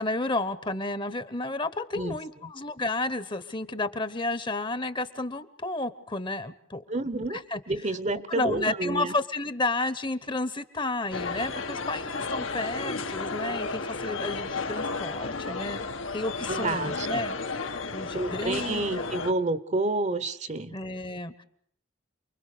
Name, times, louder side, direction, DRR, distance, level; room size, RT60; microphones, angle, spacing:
voice 1, 0.0-6.8 7.3-7.6 7.9-8.0 8.3-15.8 16.1-17.4 17.9-18.9 20.7-21.4, left 2 dB, 25° left, 14 dB, 1.0 m, -31 dB
voice 2, 6.9-7.4 7.7-9.1 16.5-17.2 18.1-20.8, right 2 dB, 35° right, 14 dB, 0.9 m, -29 dB
sound 1, 11.1-19.3, left 3 dB, 80° left, 1.7 m, -33 dB
28.5 x 21.5 x 6.7 m, 0.66 s
head